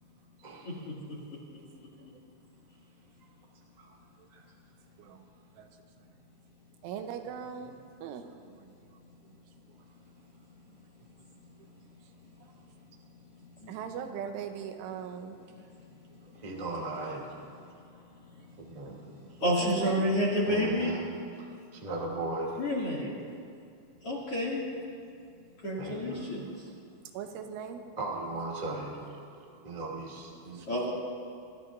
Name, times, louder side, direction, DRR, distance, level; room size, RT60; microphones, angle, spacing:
voice 1, 0.4-0.8 3.8-3.9 4.3-4.4 12.4-12.5 16.3-17.3 18.6-19.2 20.4-21.0 21.4-21.5 21.7-22.6 25.8-26.2 28.0-29.1 29.6-30.6, right 2 dB, 15° right, -4 dB, 1.2 m, -37 dB
voice 2, 6.8-7.7 8.0-8.2 13.7-15.4 19.4-20.1 27.2-27.8 29.2-29.4, right 8 dB, 85° right, 6 dB, 3.3 m, -39 dB
voice 3, 19.4-20.9 22.6-23.1 24.0-24.6 25.6-26.4 30.7-30.9, equal, 40° left, -5 dB, 2.6 m, -29 dB
26.5 x 14.5 x 2.6 m, 2.4 s
omnidirectional pair, 5.5 m